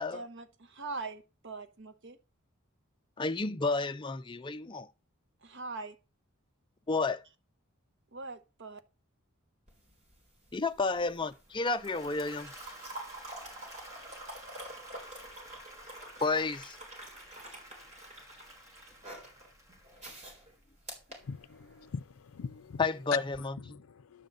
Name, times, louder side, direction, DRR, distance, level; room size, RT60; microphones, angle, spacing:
voice 1, 0.0-2.2 5.4-6.0 8.1-8.8, right 3 dB, 55° right, 1.0 m, -42 dB
voice 2, 3.2-4.9 6.9-7.2 10.5-12.5 16.2-16.8 22.8-23.8, left 3 dB, 25° left, 0.5 m, -31 dB
sound 1, 9.7-22.0 23.2-23.4, right 1 dB, 35° right, 4.0 m, -48 dB
Applause / Crowd, 11.5-20.6, equal, 15° right, 1.7 m, -53 dB
voice 3, 21.2-22.8 23.4-24.3, left 4 dB, 80° left, 0.5 m, -44 dB
11.0 x 4.0 x 7.8 m
head